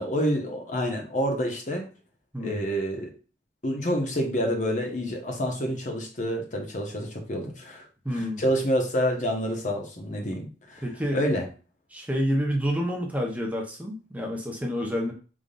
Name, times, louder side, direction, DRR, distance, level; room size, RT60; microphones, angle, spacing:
voice 1, 0.0-1.9 2.4-3.1 3.6-7.9 8.1-10.8 11.1-11.5, equal, 45° left, 2 dB, 1.1 m, -28 dB
voice 2, 8.0-8.4 10.8-11.2 11.9-15.1, equal, 10° right, 0 dB, 0.8 m, -28 dB
5.2 x 3.8 x 2.5 m, 0.35 s
head